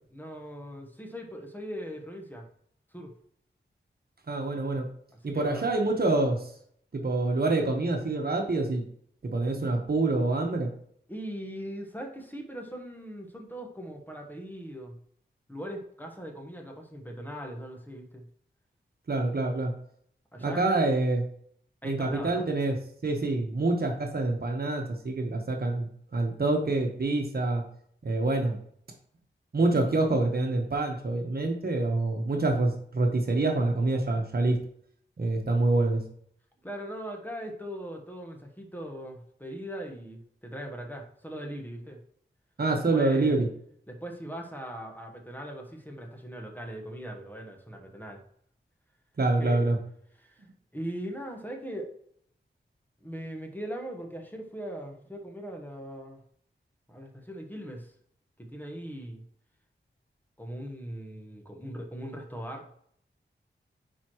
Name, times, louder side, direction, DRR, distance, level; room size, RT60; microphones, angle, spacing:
voice 1, 0.1-2.5 2.9-3.1 5.2-5.7 11.1-15.0 15.5-18.3 20.3-20.8 21.8-22.5 36.6-42.0 42.9-43.3 43.9-48.2 49.4-49.7 50.2-50.4 50.7-51.9 53.0-56.2 56.9-57.9 58.4-59.2 60.4-62.8, equal, 10° left, 2 dB, 1.3 m, -40 dB
voice 2, 4.3-4.8 5.2-6.4 6.9-8.8 9.2-10.7 19.1-19.7 20.4-21.2 21.8-22.7 23.0-27.6 28.0-28.6 29.5-34.6 35.2-36.0 42.6-43.5 49.2-49.8 50.4-50.5, right 2 dB, 55° right, 3 dB, 1.2 m, -26 dB
9.4 x 4.5 x 3.1 m, 0.64 s
wide cardioid pair, 80°, 19 cm